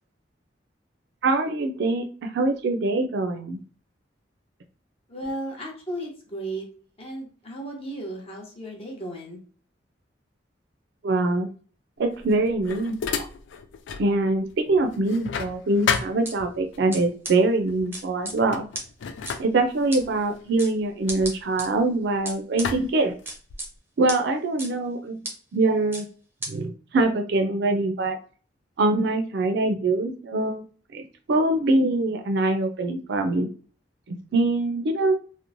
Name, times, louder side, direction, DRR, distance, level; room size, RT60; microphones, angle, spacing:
voice 1, 1.2-2.1 2.3-3.6 11.0-11.5 12.0-13.2 14.0-18.7 19.4-23.1 24.0-25.2 25.5-26.1 26.5-28.2 28.8-30.6 30.9-33.5 34.1-35.1, right 2 dB, 65° right, 6 dB, 0.4 m, -23 dB
voice 2, 5.1-6.7 7.0-9.4, right 1 dB, 35° left, 0 dB, 0.8 m, -35 dB
sound 1, 12.1-14.1 14.5-16.8 17.7-17.9 18.3-22.1 22.6-23.8, left 6 dB, 80° left, 0.3 m, -33 dB
sound 2, 15.9-16.3 16.9-17.0 17.2-17.3 17.9-18.3 18.7-18.8 19.3-19.4 19.9-20.0 20.6-20.7 21.1-21.7 22.3-22.7 23.3-23.7 24.1-24.2 24.6-24.7 25.2-25.3 25.9-26.0 26.4-26.5, right 2 dB, 15° right, 0.6 m, -33 dB
3.0 x 2.0 x 2.5 m, 0.41 s
head